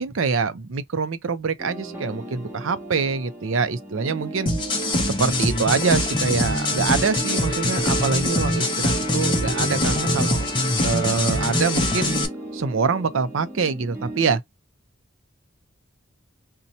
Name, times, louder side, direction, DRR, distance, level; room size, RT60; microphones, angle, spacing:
voice 1, 0.0-4.5 5.0-10.4 10.8-12.2 12.5-14.4, right 5 dB, 75° right, 0.5 m, -25 dB
sound 1, 1.6-14.4, right 2 dB, 10° right, 0.9 m, -36 dB
sound 2, 4.5-12.3, left 1 dB, 25° left, 0.7 m, -23 dB
2.7 x 2.2 x 4.1 m
head